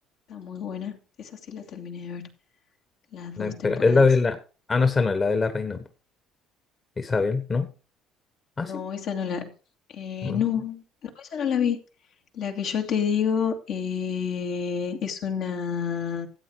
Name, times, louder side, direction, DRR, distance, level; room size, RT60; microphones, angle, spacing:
voice 1, 0.3-2.3 3.1-4.1 8.6-9.5 9.9-10.8 11.2-11.8 12.3-16.3, left 7 dB, 65° left, 2.4 m, -29 dB
voice 2, 3.4-4.4 4.7-5.8 7.0-7.7 8.6-8.8 10.2-10.4, left 4 dB, 30° left, 1.5 m, -22 dB
13.5 x 8.2 x 4.8 m
supercardioid pair, 80°, 0 cm